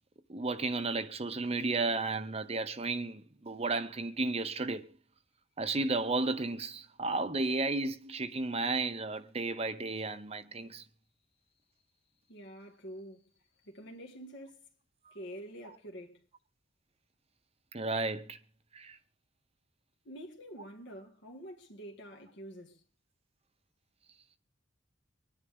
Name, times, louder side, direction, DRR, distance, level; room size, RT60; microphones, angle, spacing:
voice 1, 0.3-4.8 5.6-10.8 15.1-15.2 17.7-18.4 18.7-19.0, right 3 dB, 30° right, 0.8 m, -33 dB
voice 2, 12.3-13.3 13.6-14.6 15.1-16.2 20.1-22.8, equal, 60° left, 1.9 m, -47 dB
25.0 x 10.0 x 3.6 m
head